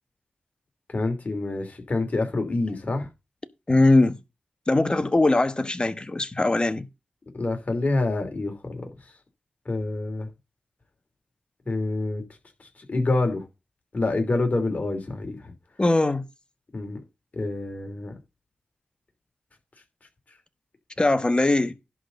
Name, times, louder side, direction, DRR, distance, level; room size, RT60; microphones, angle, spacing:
voice 1, 0.9-3.1 7.3-8.9 9.6-10.3 11.6-12.2 12.6-13.4 13.9-15.5 16.7-17.0 17.3-18.1, left 2 dB, 50° left, 2.9 m, -27 dB
voice 2, 3.7-4.2 4.7-6.9 15.8-16.2 21.0-21.7, left 2 dB, 30° left, 1.2 m, -21 dB
11.0 x 4.0 x 6.9 m
cardioid pair, 55°, 3 cm